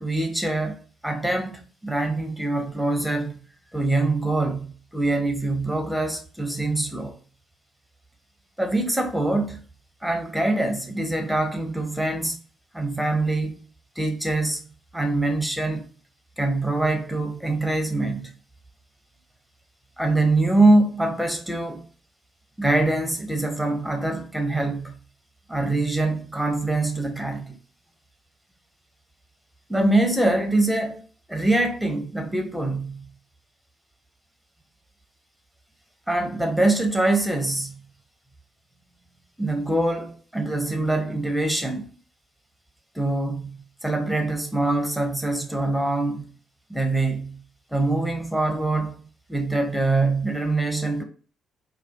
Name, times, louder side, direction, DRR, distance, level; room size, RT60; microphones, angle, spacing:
voice 1, 0.0-3.3 3.7-7.2 8.6-9.6 10.0-12.4 12.7-13.5 14.0-14.6 14.9-15.9 16.4-18.3 20.0-21.9 22.6-24.9 25.5-27.6 29.7-31.0 31.3-33.0 36.1-37.8 39.4-41.9 42.9-46.2 46.7-47.4 47.7-49.0 49.3-51.0, right 2 dB, ahead, 0.9 m, -24 dB
4.1 x 2.4 x 2.4 m
hypercardioid pair, 45°, 0 cm